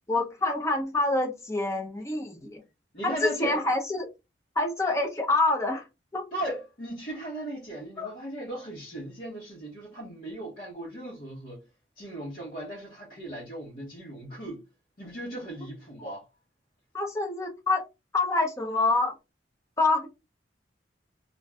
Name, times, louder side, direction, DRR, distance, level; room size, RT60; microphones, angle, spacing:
voice 1, 0.1-2.6 3.0-4.1 4.6-5.8 6.1-6.2 8.0-8.1 16.9-17.9 18.1-19.1 19.8-20.1, left 2 dB, 15° left, 0.7 m, -26 dB
voice 2, 2.9-3.6 6.3-11.6 12.0-14.6 15.0-16.2, right 1 dB, 50° left, 1.1 m, -37 dB
2.5 x 2.3 x 3.3 m
head